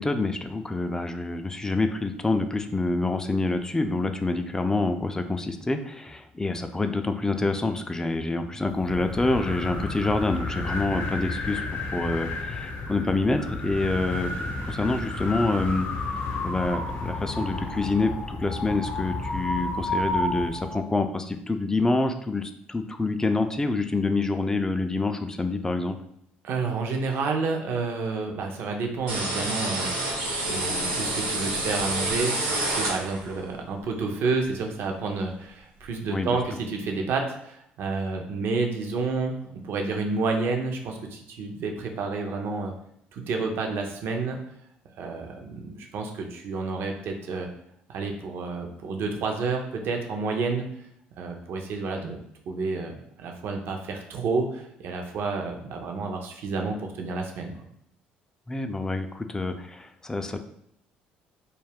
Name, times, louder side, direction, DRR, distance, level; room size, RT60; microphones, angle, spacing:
voice 1, 0.0-11.6 11.9-15.9 16.4-26.0 36.1-36.4 58.5-60.4, left 2 dB, 15° left, 7 dB, 0.3 m, -27 dB
sound 1, 8.7-20.8, left 2 dB, 55° left, 0.7 m, -31 dB
voice 2, 26.4-42.7 43.1-44.4 45.0-47.5 47.9-50.7 51.2-52.2 52.5-57.5, right 4 dB, 65° right, 3 dB, 0.5 m, -30 dB
sound 2, 29.1-33.4, right 2 dB, 85° right, 0.9 m, -28 dB
2.3 x 2.1 x 3.4 m, 0.73 s
hypercardioid pair, 65°, 4 cm